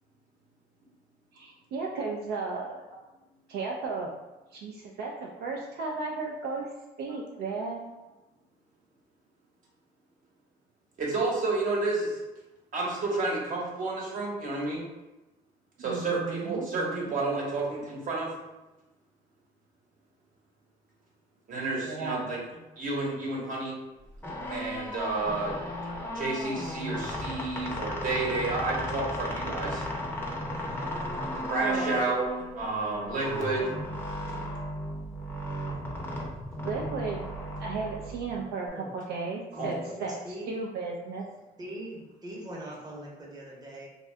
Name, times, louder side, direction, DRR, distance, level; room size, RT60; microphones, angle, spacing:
voice 1, 1.3-2.8 3.5-4.1 4.5-6.7 7.0-7.8 15.8-16.7 21.8-22.2 31.6-32.0 36.6-37.3 37.6-40.1 40.5-41.2, right 4 dB, 70° right, -1 dB, 0.4 m, -34 dB
voice 2, 11.0-12.1 12.7-14.8 15.8-18.3 21.5-22.4 22.8-23.8 24.5-25.6 26.1-29.8 31.5-33.7 39.5-39.7, right 3 dB, 50° right, -3 dB, 1.0 m, -30 dB
sound 1, 24.1-38.7, equal, 15° left, 0.6 m, -35 dB
voice 3, 38.6-38.9 39.5-40.5 41.6-43.9, equal, 25° right, -4 dB, 0.8 m, -41 dB
2.7 x 2.3 x 3.2 m, 1.0 s
cardioid pair, 110°, 17 cm